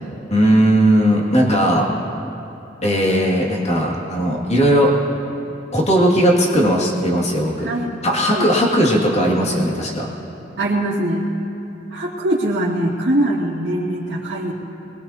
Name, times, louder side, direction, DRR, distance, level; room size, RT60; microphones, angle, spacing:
voice 1, 0.3-1.9 2.8-4.9 5.7-7.7 8.0-10.1, equal, 35° left, -3 dB, 2.3 m, -17 dB
voice 2, 7.6-7.9 8.2-8.5 10.6-11.2 11.9-14.5, right 1 dB, 80° right, -9 dB, 2.4 m, -22 dB
22.5 x 21.0 x 2.9 m, 2.9 s
head